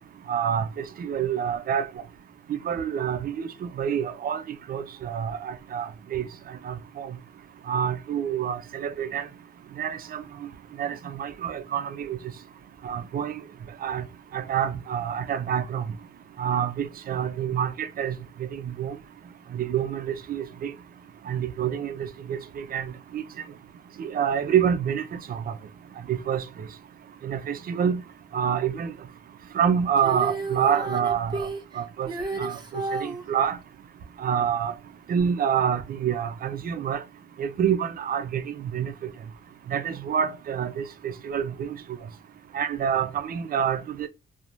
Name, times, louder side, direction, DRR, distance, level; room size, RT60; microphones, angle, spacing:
voice 1, 0.3-1.9 2.5-4.4 4.7-6.2 6.6-7.1 7.7-9.3 9.8-10.2 10.8-12.2 12.8-13.4 13.8-14.0 14.3-15.8 16.4-19.0 19.5-20.7 21.3-22.9 23.1-23.2 24.0-25.5 26.1-26.4 27.2-28.0 28.3-28.9 29.5-31.5 31.8-32.1 32.4-33.6 34.2-34.7 35.1-37.0 37.4-38.9 39.7-41.8 42.5-44.1, right 8 dB, 45° right, 0.5 m, -27 dB
Female singing, 30.0-33.2 35.2-35.3, right 2 dB, 20° right, 0.8 m, -32 dB
2.9 x 2.1 x 2.4 m
cardioid pair, 90°, 20 cm